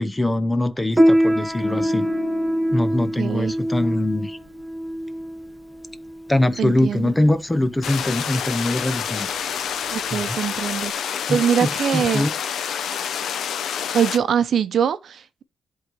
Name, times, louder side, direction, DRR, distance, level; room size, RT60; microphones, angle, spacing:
voice 1, 0.0-2.1 2.7-4.4 6.3-9.3 10.1-10.4 11.3-12.3, left 1 dB, 10° left, 0.5 m, -23 dB
Piano, 0.9-10.9, equal, 5° right, 0.9 m, -24 dB
sound 1, 1.5-4.8 5.1-5.4, left 9 dB, 30° left, 1.9 m, -40 dB
voice 2, 3.2-3.5 6.6-7.1 9.9-10.9 11.3-12.3 13.9-15.4, right 8 dB, 60° right, 0.8 m, -22 dB
sound 2, 7.8-14.2, left 8 dB, 80° left, 0.7 m, -28 dB
11.0 x 3.9 x 4.6 m
wide cardioid pair, 175°, 0 cm